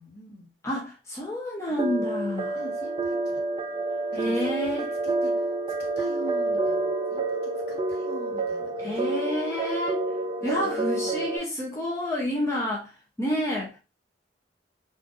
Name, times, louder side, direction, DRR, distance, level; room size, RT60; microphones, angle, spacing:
voice 1, 0.0-0.5 1.7-2.1 2.5-3.4 4.1-4.8 5.0-5.5 5.8-9.1 10.4-11.3, right 1 dB, 60° left, 1.1 m, -45 dB
voice 2, 0.6-2.6 4.1-4.9 8.8-10.0 10.4-12.9 13.2-13.8, left 1 dB, 15° left, 0.6 m, -29 dB
sound 1, 1.8-11.4, right 2 dB, 30° right, 0.4 m, -28 dB
3.9 x 2.5 x 2.4 m
head